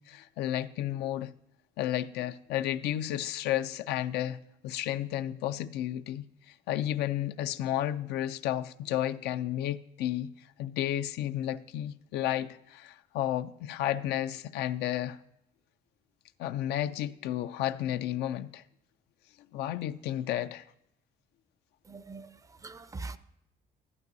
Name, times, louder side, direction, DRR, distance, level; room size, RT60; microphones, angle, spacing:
voice 1, 0.0-1.3 1.8-10.3 10.6-15.2 16.4-18.6 19.5-20.7, left 12 dB, 80° left, 0.4 m, -32 dB
voice 2, 21.9-23.2, right 3 dB, 20° right, 0.4 m, -42 dB
12.0 x 10.5 x 2.7 m
cardioid pair, 110°, 17 cm